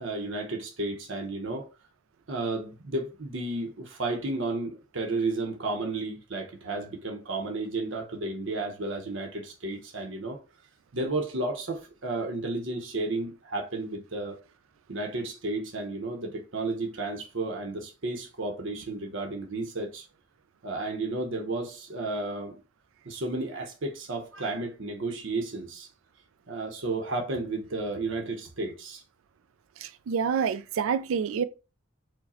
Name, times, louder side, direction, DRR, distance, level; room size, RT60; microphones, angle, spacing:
voice 1, 0.0-1.7 2.3-10.4 10.9-14.4 14.9-20.0 20.6-22.6 23.0-25.9 26.5-29.0, right 2 dB, 65° right, 0.8 m, -32 dB
voice 2, 29.8-31.4, right 6 dB, 90° right, 0.4 m, -27 dB
4.7 x 2.2 x 4.2 m
head